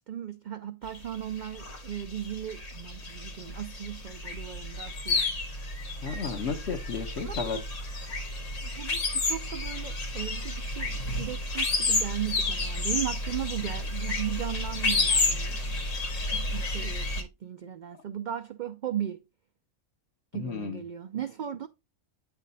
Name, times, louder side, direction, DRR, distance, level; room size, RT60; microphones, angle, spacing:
voice 1, 0.0-5.2 7.2-7.4 8.6-15.8 16.3-19.2 20.3-21.7, right 10 dB, 65° right, 0.4 m, -36 dB
sound 1, 0.9-17.2, left 2 dB, 90° left, 1.9 m, -31 dB
voice 2, 6.0-7.6 20.3-20.8, left 5 dB, 65° left, 1.2 m, -33 dB
8.3 x 3.5 x 4.0 m
omnidirectional pair, 1.3 m